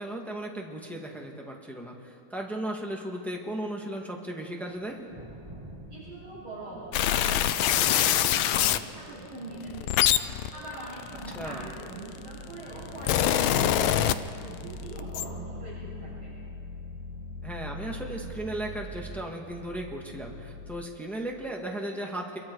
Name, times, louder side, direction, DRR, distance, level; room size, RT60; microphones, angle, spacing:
voice 1, 0.0-5.1 11.3-11.7 17.4-22.4, right 1 dB, ahead, 0 dB, 1.7 m, -36 dB
sound 1, 4.8-20.9, left 1 dB, 15° right, 1.3 m, -43 dB
voice 2, 5.9-10.1 10.5-16.3, right 2 dB, 80° right, -10 dB, 8.0 m, -42 dB
sound 2, 6.9-8.8 9.6-11.9 12.7-14.6 14.9-15.2, left 11 dB, 75° left, 1.4 m, -24 dB
26.0 x 23.0 x 4.7 m, 2.8 s
omnidirectional pair, 2.3 m